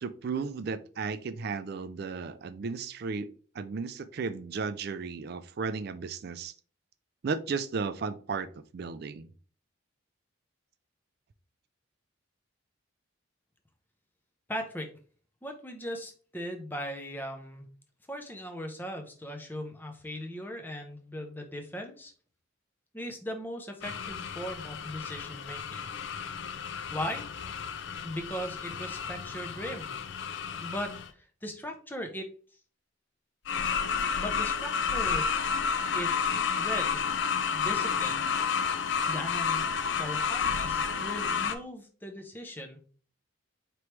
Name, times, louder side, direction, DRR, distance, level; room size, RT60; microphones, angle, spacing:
voice 1, 0.0-3.3 3.5-6.5 7.2-8.5 8.7-9.3, right 5 dB, 50° right, 0.3 m, -34 dB
voice 2, 14.5-14.9 15.4-17.7 18.1-22.1 22.9-25.9 26.9-27.3 28.0-29.9 30.6-32.3 34.2-35.5 35.9-37.0 37.5-38.2 39.1-39.7 40.0-42.8, equal, 10° left, 0.5 m, -38 dB
sound 1, 23.8-31.1 33.5-41.6, left 6 dB, 60° left, 0.4 m, -31 dB
4.6 x 3.0 x 3.1 m
head